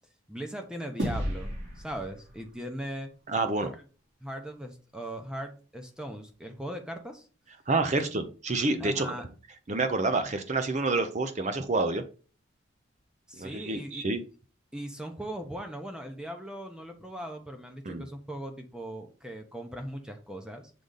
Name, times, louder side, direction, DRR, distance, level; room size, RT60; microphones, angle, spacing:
voice 1, 0.3-3.1 3.6-3.8 4.2-7.3 8.8-9.2 13.3-14.1 14.7-20.7, right 1 dB, 5° right, 4 dB, 0.8 m, -39 dB
sound 1, 1.0-3.6, equal, 70° right, 3.1 m, -35 dB
voice 2, 3.3-3.7 7.7-9.1 9.7-12.0 13.4-14.2 17.9-18.0, right 3 dB, 35° right, 8 dB, 0.6 m, -28 dB
6.7 x 3.8 x 3.9 m, 0.36 s
head